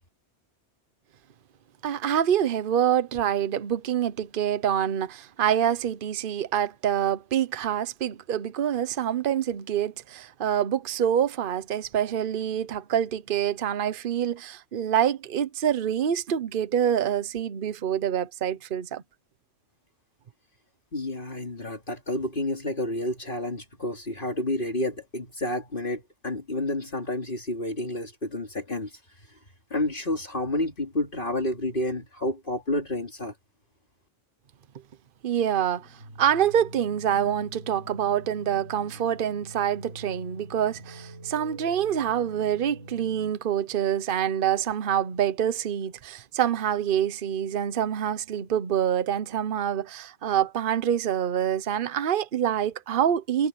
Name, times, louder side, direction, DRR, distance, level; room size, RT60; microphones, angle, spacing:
voice 1, 1.8-19.0 35.2-53.5, right 9 dB, 50° right, 1.0 m, -26 dB
voice 2, 20.9-28.9 29.7-33.3, left 1 dB, 45° left, 3.0 m, -30 dB
sound 1, 35.7-43.3, right 1 dB, 85° right, 6.0 m, -45 dB
omnidirectional pair, 1.3 m